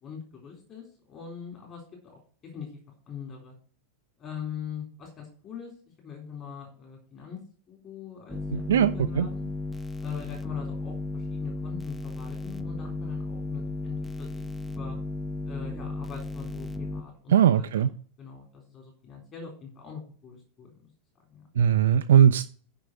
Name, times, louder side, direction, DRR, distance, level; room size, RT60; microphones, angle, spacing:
voice 1, 0.0-2.8 3.1-3.5 4.2-5.7 6.0-7.4 7.7-9.5 10.0-15.0 15.5-17.9 18.2-20.7 21.3-21.5, left 7 dB, 30° left, 3.7 m, -42 dB
sound 1, 8.3-17.0, left 3 dB, 10° left, 0.8 m, -34 dB
voice 2, 8.5-9.3 17.3-17.9 21.6-22.5, right 9 dB, 60° right, 0.5 m, -20 dB
9.1 x 5.6 x 7.7 m
figure-of-eight pair, 90°, 0 cm